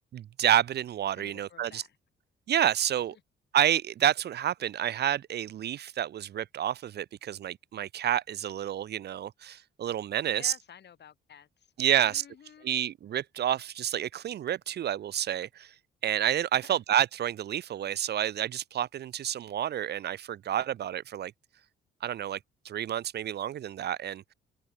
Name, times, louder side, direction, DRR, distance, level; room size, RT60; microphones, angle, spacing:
voice 1, 0.1-1.8 2.5-3.1 3.5-10.5 11.8-12.2 12.6-15.7 16.0-21.3 22.0-22.4 22.6-24.3, right 10 dB, 55° right, 0.6 m, -29 dB
voice 2, 1.2-2.0 3.1-3.2 10.2-12.7 16.5-16.8, left 8 dB, 60° left, 7.8 m, -52 dB
cardioid pair, 90°, 20 cm